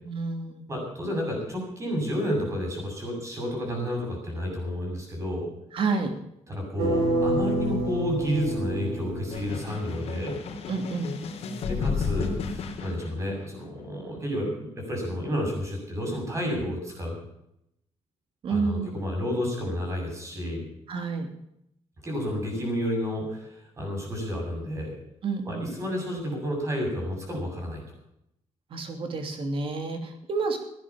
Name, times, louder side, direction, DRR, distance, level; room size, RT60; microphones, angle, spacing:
voice 1, 0.0-0.7 5.7-6.1 10.7-11.1 18.4-18.9 20.9-21.3 25.2-25.8 28.7-30.6, right 4 dB, 50° right, 5 dB, 3.1 m, -29 dB
voice 2, 0.7-5.5 6.5-10.3 11.7-17.2 18.5-20.7 22.0-24.9 25.4-27.8, equal, 25° right, 1 dB, 7.3 m, -31 dB
sound 1, 6.8-9.8, right 1 dB, 70° right, 6.3 m, -27 dB
sound 2, 9.3-13.6, left 5 dB, 65° left, 3.4 m, -32 dB
17.0 x 10.0 x 7.2 m, 0.78 s
cardioid pair, 140°, 11 cm